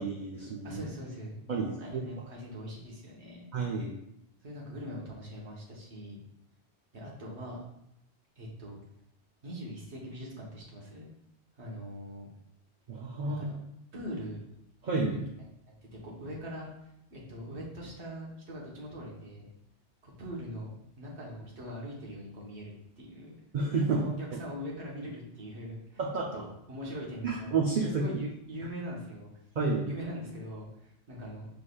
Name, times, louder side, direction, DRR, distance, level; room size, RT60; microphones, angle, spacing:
voice 1, 0.0-0.8 1.5-2.0 3.5-3.9 12.9-13.5 14.8-15.2 23.5-24.0 26.0-26.2 27.2-27.9 29.6-29.9, right 4 dB, 50° right, -1 dB, 0.6 m, -30 dB
voice 2, 0.6-3.4 4.4-6.2 6.9-7.6 8.4-8.8 9.4-11.1 11.6-12.3 13.2-13.6 13.9-14.4 16.0-16.7 17.1-19.5 20.0-20.7 21.0-23.3 23.9-26.0 26.3-27.5 27.8-29.3 29.9-31.5, equal, 70° right, -3 dB, 1.4 m, -42 dB
5.9 x 3.3 x 2.3 m, 0.79 s
omnidirectional pair, 1.2 m